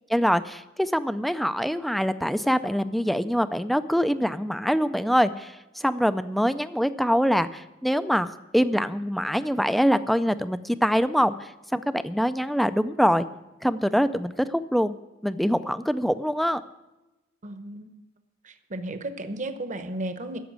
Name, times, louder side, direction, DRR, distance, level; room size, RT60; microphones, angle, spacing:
voice 1, 0.1-13.3 13.6-14.9 15.2-16.6, equal, ahead, 12 dB, 0.4 m, -24 dB
voice 2, 17.4-18.0 18.4-20.4, right 1 dB, 40° right, 9 dB, 0.9 m, -34 dB
11.0 x 7.3 x 9.4 m, 1.0 s
head